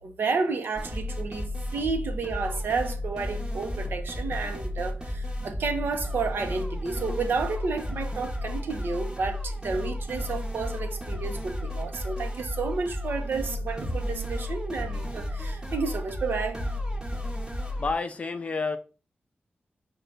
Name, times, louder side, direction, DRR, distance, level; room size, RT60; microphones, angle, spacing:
voice 1, 0.0-16.6, right 4 dB, 75° right, 0.7 m, -31 dB
sound 1, 0.8-17.9, left 1 dB, 20° right, 0.9 m, -33 dB
voice 2, 17.8-18.8, left 4 dB, 35° left, 0.4 m, -29 dB
5.2 x 2.3 x 3.8 m
wide cardioid pair, 170°, 4 cm